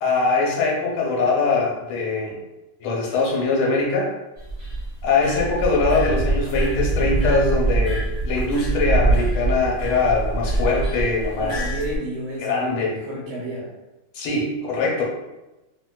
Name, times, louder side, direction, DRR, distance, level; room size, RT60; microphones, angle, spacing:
voice 1, 0.0-2.4 2.8-4.1 5.0-11.5 12.4-13.0 14.1-15.0, left 3 dB, 90° left, -3 dB, 1.7 m, -22 dB
sound 1, 4.4-12.0, right 2 dB, 40° left, 1.0 m, -24 dB
voice 2, 11.4-13.7, right 1 dB, 80° right, -5 dB, 1.5 m, -31 dB
3.2 x 2.8 x 2.3 m, 1.0 s
omnidirectional pair, 2.3 m